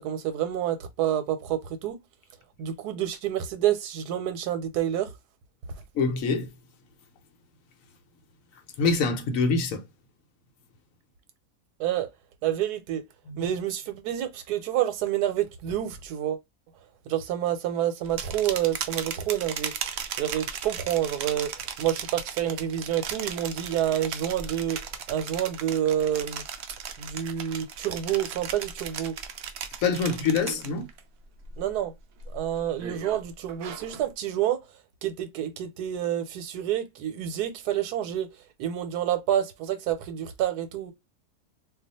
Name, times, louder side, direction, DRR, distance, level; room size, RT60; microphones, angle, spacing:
voice 1, 0.0-2.0 2.6-5.1 11.8-12.1 12.4-13.0 13.4-16.4 17.1-19.7 20.2-21.5 21.8-24.8 25.1-26.4 27.0-29.1 30.5-30.6 31.6-31.9 32.3-34.6 35.0-38.3 38.6-40.9, right 11 dB, 90° right, 1.2 m, -28 dB
voice 2, 5.9-6.5 8.8-9.8 13.3-13.5 29.8-30.9, left 4 dB, 65° left, 1.0 m, -25 dB
sound 1, 18.0-31.0 31.4-31.8 32.2-34.1, right 7 dB, 70° right, 0.6 m, -37 dB
2.4 x 2.3 x 4.0 m
omnidirectional pair, 1.7 m